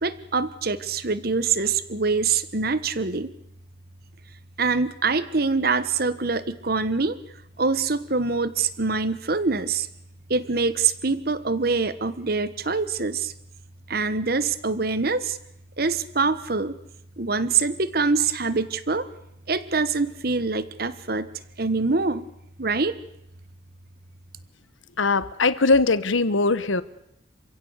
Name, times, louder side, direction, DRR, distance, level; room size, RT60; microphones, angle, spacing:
voice 1, 0.0-3.3 4.6-7.2 7.6-9.9 10.3-13.3 13.9-15.4 15.8-16.8 17.2-19.1 19.5-21.3 21.6-22.3 22.6-23.0, right 4 dB, 50° right, 14 dB, 1.3 m, -24 dB
voice 2, 25.0-26.8, left 3 dB, 90° left, 16 dB, 1.1 m, -21 dB
27.5 x 16.0 x 8.2 m, 0.79 s
head